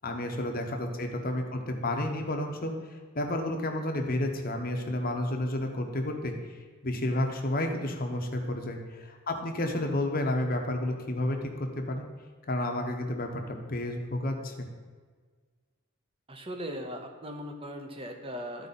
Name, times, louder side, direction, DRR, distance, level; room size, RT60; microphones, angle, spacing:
voice 1, 0.0-2.7 3.1-6.3 6.8-12.0 12.5-14.7, left 1 dB, 40° left, 3 dB, 0.9 m, -31 dB
voice 2, 16.3-18.7, equal, 25° right, 4 dB, 0.8 m, -38 dB
12.5 x 4.7 x 4.1 m, 1.5 s
head